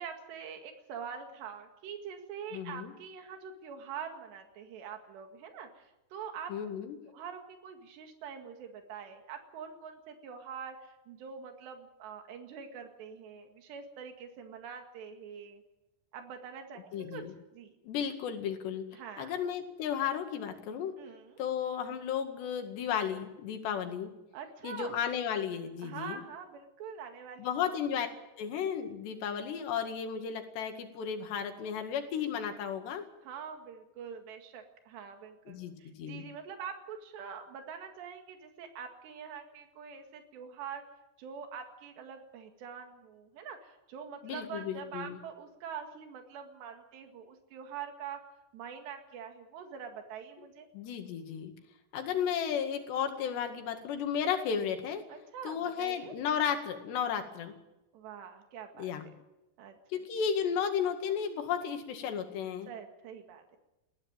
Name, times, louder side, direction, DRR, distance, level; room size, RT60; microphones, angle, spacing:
voice 1, 0.0-6.8 7.1-15.6 16.1-17.2 17.5-17.8 18.9-19.4 21.0-21.4 24.3-25.0 25.8-27.5 33.2-40.8 41.2-48.2 48.5-50.7 55.1-56.1 57.9-58.9 59.6-59.8 62.7-63.6, right 7 dB, 85° right, 5 dB, 4.2 m, -44 dB
voice 2, 2.5-2.9 6.5-7.0 16.9-17.3 17.8-18.9 19.2-21.0 21.4-24.1 24.6-26.2 27.4-28.1 28.4-33.1 35.5-36.2 44.2-45.2 50.7-51.5 51.9-55.0 55.4-57.5 58.8-59.1 59.9-62.7, left 8 dB, 90° left, 6 dB, 4.2 m, -34 dB
20.5 x 15.5 x 9.0 m, 0.96 s
omnidirectional pair, 4.8 m